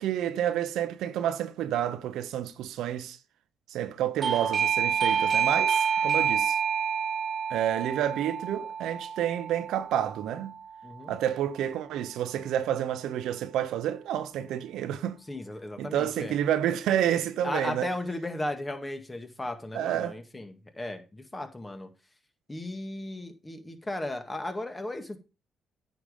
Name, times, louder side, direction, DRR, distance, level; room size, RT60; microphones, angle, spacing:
voice 1, 0.0-3.2 3.7-6.6 7.5-10.5 11.1-15.2 15.8-17.9 19.7-20.2, right 11 dB, 85° right, 0.8 m, -29 dB
Doorbell, 4.2-10.7, right 7 dB, 55° right, 0.4 m, -28 dB
voice 2, 10.8-11.1 15.3-16.3 17.4-21.9 22.5-25.2, left 1 dB, 20° left, 1.9 m, -35 dB
9.1 x 5.3 x 5.1 m
supercardioid pair, 65°, 0 cm